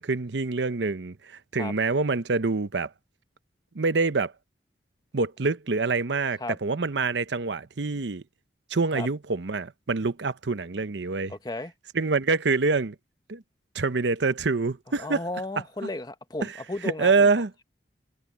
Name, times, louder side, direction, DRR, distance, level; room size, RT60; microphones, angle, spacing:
voice 1, 0.0-2.9 3.7-4.3 5.1-8.2 8.7-11.3 11.9-12.9 13.3-13.4 13.7-15.2 17.0-17.5, right 4 dB, 80° right, 0.8 m, -26 dB
voice 2, 11.3-11.7 14.9-17.3, left 2 dB, 25° left, 1.0 m, -34 dB
head